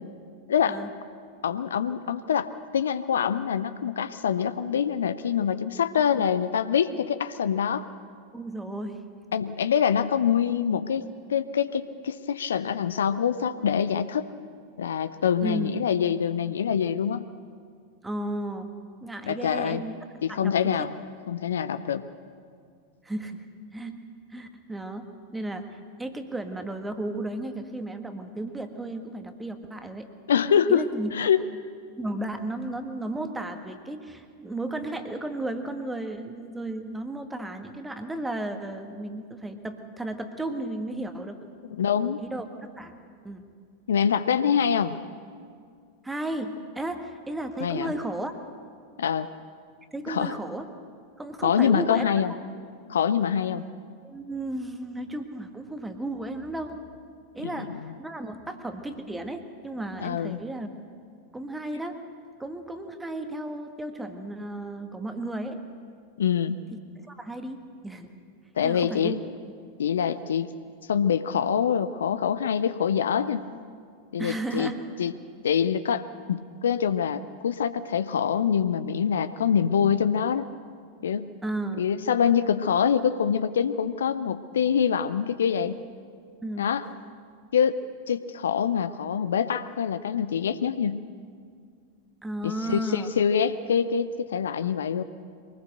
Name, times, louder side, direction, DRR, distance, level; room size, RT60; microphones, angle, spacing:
voice 1, 0.5-0.8 1.4-7.9 9.3-14.3 14.8-17.3 19.3-19.8 20.2-20.9 21.3-22.1 30.3-30.8 31.1-31.4 41.7-42.2 43.9-45.0 47.6-47.9 49.0-49.3 50.1-50.3 51.4-52.3 52.9-53.6 57.4-57.9 60.0-60.4 66.2-66.6 68.6-69.2 69.8-70.5 70.9-73.5 74.1-74.7 75.0-75.1 75.4-80.5 81.0-81.3 81.8-85.8 86.6-86.8 87.5-91.0 92.4-95.0, left 8 dB, 65° left, 13 dB, 0.6 m, -25 dB
voice 2, 8.3-9.0 15.4-15.8 18.0-18.7 19.0-20.0 20.3-20.9 23.0-23.4 23.7-24.0 24.3-25.1 25.3-30.1 30.7-31.1 32.0-41.4 42.2-42.9 43.2-43.5 46.0-48.5 49.9-50.7 51.2-52.1 54.0-56.8 57.3-60.7 61.3-62.0 62.4-65.6 67.1-68.1 68.6-69.2 74.2-74.8 81.4-81.8 86.4-86.7 92.2-93.1, right 1 dB, 10° right, 7 dB, 1.6 m, -34 dB
23.5 x 19.0 x 6.6 m, 2.1 s
figure-of-eight pair, 90°, 0 cm